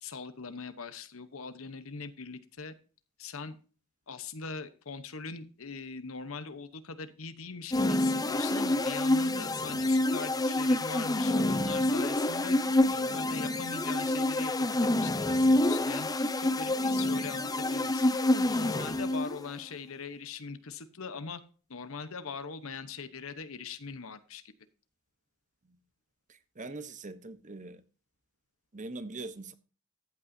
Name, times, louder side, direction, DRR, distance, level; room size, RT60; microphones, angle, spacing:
voice 1, 0.0-2.7 3.2-3.6 4.1-12.6 12.9-18.2 18.5-21.4 21.7-24.4, left 4 dB, 70° left, 1.0 m, -41 dB
sound 1, 7.7-19.5, left 1 dB, 15° left, 0.6 m, -27 dB
voice 2, 26.3-27.8 28.7-29.5, right 3 dB, 35° right, 1.0 m, -42 dB
14.0 x 8.5 x 2.7 m
head